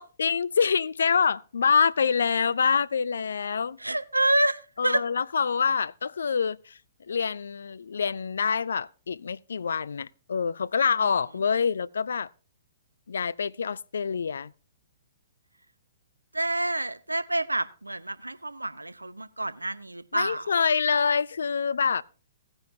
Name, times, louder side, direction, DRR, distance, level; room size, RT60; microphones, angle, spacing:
voice 1, 0.2-3.8 4.8-6.8 7.1-12.3 13.1-14.5 20.1-22.0, left 6 dB, 65° left, 0.4 m, -26 dB
voice 2, 3.8-5.0 16.3-20.4, right 1 dB, 85° right, 0.7 m, -28 dB
16.5 x 9.7 x 2.7 m
figure-of-eight pair, 120°, 0 cm